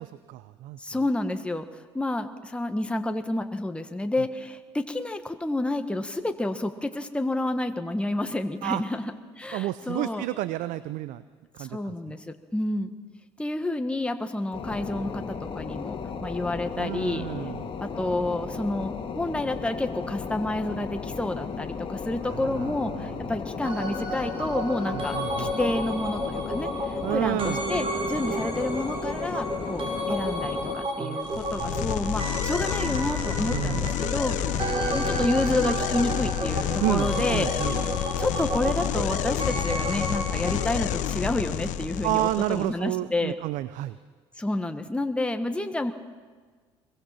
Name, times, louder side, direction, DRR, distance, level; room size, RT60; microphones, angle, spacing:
voice 1, 0.0-0.8 8.6-8.8 9.5-11.2 11.5-12.1 16.8-17.7 22.2-23.1 24.9-25.5 27.0-27.6 31.0-31.9 33.5-33.9 36.8-37.8 42.0-44.0, right 16 dB, 65° right, 15 dB, 0.7 m, -31 dB
voice 2, 0.8-9.1 9.4-10.2 11.6-12.9 13.4-17.2 17.8-34.4 34.9-37.8 38.2-43.4 44.4-45.9, left 2 dB, 5° left, 7 dB, 1.4 m, -29 dB
sound 1, 14.5-30.8, left 5 dB, 40° left, 2.6 m, -35 dB
sound 2, 23.6-41.7 42.0-42.1, right 1 dB, 40° right, 6.1 m, -32 dB
sound 3, 31.2-42.7, left 11 dB, 60° left, 1.0 m, -29 dB
23.0 x 22.5 x 5.9 m, 1.5 s
hypercardioid pair, 65°, 14 cm